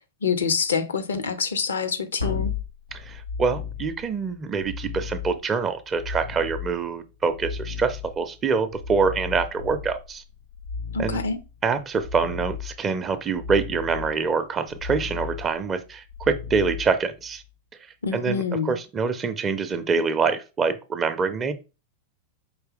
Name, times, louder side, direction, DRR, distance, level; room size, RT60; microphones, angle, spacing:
voice 1, 0.2-2.5 10.9-11.4 18.0-18.8, left 5 dB, 70° left, 0.6 m, -26 dB
sound 1, 2.2-17.5 20.6-20.7, left 6 dB, 90° left, 1.4 m, -35 dB
voice 2, 2.9-10.2 11.0-11.2 11.6-17.4 18.1-21.5, right 5 dB, 25° right, 0.5 m, -25 dB
4.7 x 2.8 x 3.7 m
figure-of-eight pair, 90°, 0 cm